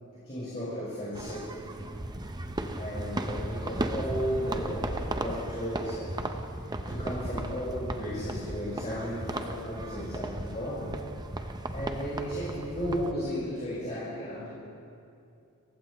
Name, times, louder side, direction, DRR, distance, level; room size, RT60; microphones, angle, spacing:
voice 1, 0.1-1.5 2.7-6.2 6.8-10.9 11.7-14.5, equal, 30° left, -9 dB, 5.1 m, -34 dB
sound 1, 1.1-13.1, right 1 dB, 20° right, 0.8 m, -35 dB
29.0 x 16.0 x 3.1 m, 2.5 s
head